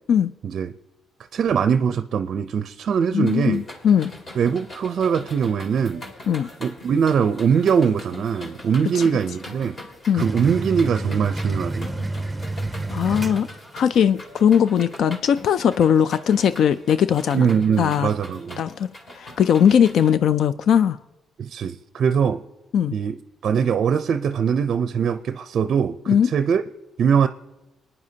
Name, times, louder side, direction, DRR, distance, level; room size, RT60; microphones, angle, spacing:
voice 1, 1.3-3.6 4.4-6.0 6.6-9.8 10.1-11.9 17.3-18.6 21.4-22.4 22.9-23.2 23.4-26.0 26.2-26.6 27.0-27.3, right 7 dB, 60° right, 10 dB, 0.4 m, -22 dB
voice 2, 3.1-4.1 6.3-6.5 8.9-9.0 10.1-10.3 12.9-13.5 13.7-17.5 17.8-18.1 18.6-18.9 19.1-21.0 22.7-23.0 26.1-26.3, left 8 dB, 70° left, 14 dB, 0.3 m, -19 dB
sound 1, 3.2-20.1, left 1 dB, 40° left, 2.2 m, -42 dB
sound 2, 10.2-14.0, right 2 dB, 10° right, 0.7 m, -29 dB
26.5 x 9.7 x 2.8 m, 1.0 s
cardioid pair, 90°, 0 cm